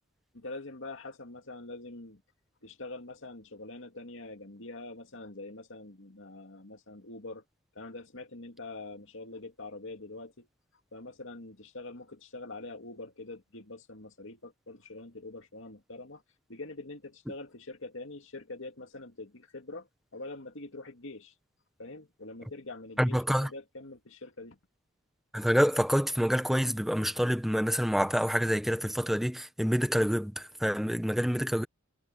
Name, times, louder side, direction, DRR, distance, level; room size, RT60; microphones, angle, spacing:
voice 1, 0.3-2.2 2.6-7.4 7.7-10.5 10.9-16.2 16.5-21.3 21.8-24.6, left 2 dB, 65° left, 2.6 m, -44 dB
voice 2, 23.0-23.5 25.3-31.6, equal, ahead, 1.2 m, -27 dB
head